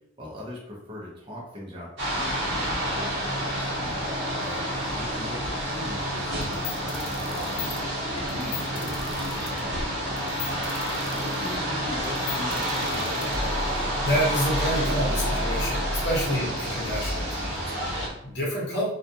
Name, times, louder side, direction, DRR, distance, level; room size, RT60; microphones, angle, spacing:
voice 1, 0.2-4.1 4.8-9.8 10.4-13.6 16.3-16.5, left 1 dB, 25° right, -5 dB, 0.6 m, -40 dB
sound 1, 2.0-18.1, equal, 65° right, 0.9 m, -29 dB
sound 2, 6.4-13.9, left 9 dB, 70° left, 0.5 m, -38 dB
voice 2, 13.7-18.9, equal, 55° left, -4 dB, 0.9 m, -29 dB
2.3 x 2.3 x 2.7 m, 0.80 s
head